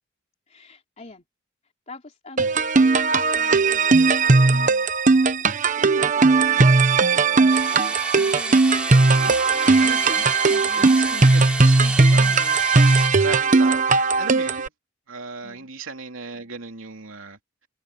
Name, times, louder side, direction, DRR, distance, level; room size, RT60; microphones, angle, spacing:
voice 1, 0.5-1.2 1.9-2.7 3.3-4.7 5.0-5.5 5.8-9.7 10.4-11.1 15.4-15.7, left 2 dB, 35° left, 3.3 m, -44 dB
sound 1, 2.4-14.7, right 3 dB, 40° right, 1.0 m, -18 dB
sound 2, 7.5-13.2, right 1 dB, 5° right, 4.0 m, -31 dB
voice 2, 9.8-10.3 10.8-12.6 12.9-14.7 15.1-17.4, right 4 dB, 80° right, 2.9 m, -36 dB
head